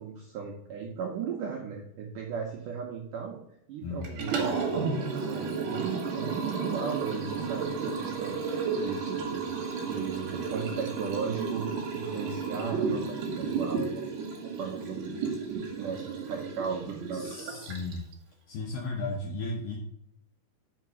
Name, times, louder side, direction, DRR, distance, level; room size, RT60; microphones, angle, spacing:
voice 1, 0.0-3.4 3.7-5.0 5.3-14.1 14.6-15.1 15.5-17.3, right 6 dB, 80° right, 0 dB, 1.9 m, -36 dB
voice 2, 3.8-4.2 17.1-18.0 18.5-19.8, left 3 dB, 75° left, 1 dB, 2.0 m, -35 dB
Liquid, 4.0-18.1, right 5 dB, 60° right, 2.5 m, -33 dB
5.9 x 4.9 x 6.0 m, 0.77 s
omnidirectional pair, 5.0 m